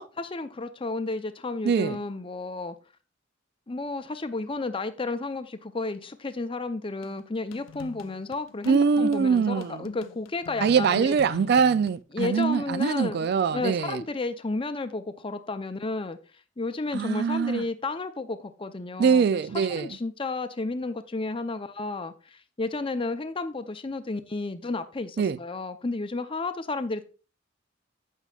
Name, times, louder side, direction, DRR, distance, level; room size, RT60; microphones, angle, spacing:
voice 1, 0.2-2.8 3.7-11.2 12.1-16.2 16.6-19.2 19.7-27.1, left 3 dB, 25° left, 0.6 m, -32 dB
voice 2, 1.6-2.0 8.7-9.9 10.6-14.0 16.9-17.6 19.0-20.0 25.2-25.4, right 6 dB, 55° right, 0.3 m, -23 dB
sound 1, 7.0-12.0, left 7 dB, 85° left, 0.4 m, -45 dB
14.0 x 5.5 x 2.4 m
head